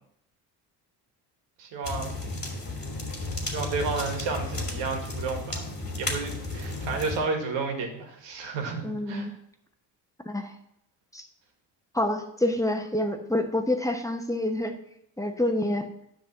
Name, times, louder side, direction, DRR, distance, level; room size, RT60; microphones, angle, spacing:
voice 1, 1.6-2.3 3.4-5.7 6.0-9.3, right 4 dB, 90° right, 4 dB, 2.0 m, -32 dB
sound 1, 1.8-7.2, left 2 dB, 25° left, 2.8 m, -33 dB
voice 2, 8.8-9.3 10.2-10.5 11.1-11.3 11.9-14.8 15.2-15.9, left 1 dB, 10° left, 5 dB, 1.0 m, -27 dB
9.9 x 3.9 x 7.4 m, 0.75 s
cardioid pair, 100°, 41 cm